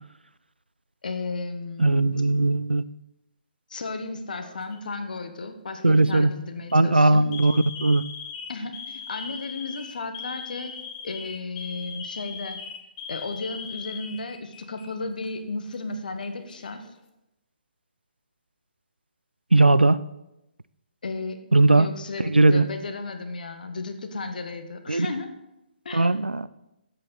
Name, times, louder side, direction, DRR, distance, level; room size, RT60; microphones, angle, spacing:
voice 1, 1.0-2.2 3.7-7.3 8.5-10.8 11.0-12.6 13.1-16.8 21.0-21.4 21.7-25.3 25.8-26.1, left 3 dB, 60° left, 8 dB, 1.3 m, -34 dB
voice 2, 1.8-2.8 5.8-6.3 6.7-8.0 19.5-20.0 21.5-21.9 22.3-22.7 24.9-25.1 25.9-26.5, right 2 dB, 85° right, 16 dB, 0.4 m, -18 dB
Alarm, 4.4-4.9 5.8-6.1 6.6-6.7 7.3-14.9 15.2-15.3 16.2-16.9, left 6 dB, 20° left, 0.9 m, -39 dB
12.0 x 8.0 x 4.1 m, 0.91 s
figure-of-eight pair, 135°, 5 cm